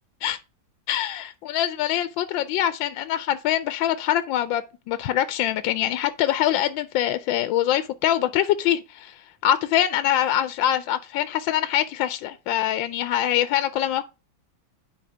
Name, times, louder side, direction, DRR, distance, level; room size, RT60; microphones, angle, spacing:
voice 1, 0.9-14.0, left 11 dB, 75° left, 1.3 m, -24 dB
10.5 x 4.8 x 3.3 m
omnidirectional pair, 2.3 m